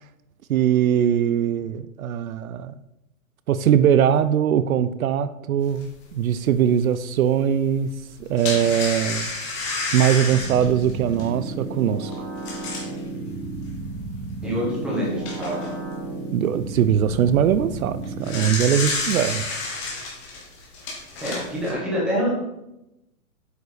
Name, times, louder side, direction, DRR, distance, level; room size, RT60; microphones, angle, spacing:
voice 1, 0.5-2.7 3.5-7.9 8.2-9.3 9.9-12.1 16.3-19.4, right 9 dB, 75° right, 13 dB, 0.6 m, -21 dB
sound 1, 5.8-5.9 6.4-6.5 8.0-13.0 13.6-13.7 14.1-14.2 14.9-15.7 17.9-21.7, left 3 dB, 20° left, 1.5 m, -30 dB
sound 2, 10.3-18.5, right 2 dB, 30° right, 1.4 m, -33 dB
voice 2, 14.4-15.6 21.2-22.4, equal, ahead, -6 dB, 1.3 m, -26 dB
8.1 x 4.9 x 5.0 m, 0.89 s
hypercardioid pair, 175°, 43 cm